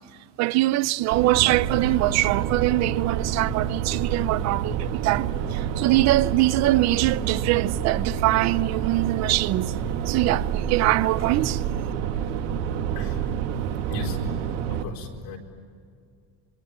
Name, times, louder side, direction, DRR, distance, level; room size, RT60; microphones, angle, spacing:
voice 1, 0.4-9.7 10.1-11.6, right 17 dB, 40° right, 0.6 m, -23 dB
sound 1, 1.1-14.8, right 9 dB, 80° right, 2.2 m, -28 dB
voice 2, 13.9-14.2 14.7-15.4, left 2 dB, 55° left, 4.7 m, -36 dB
26.0 x 24.0 x 9.0 m
cardioid pair, 175°, 41 cm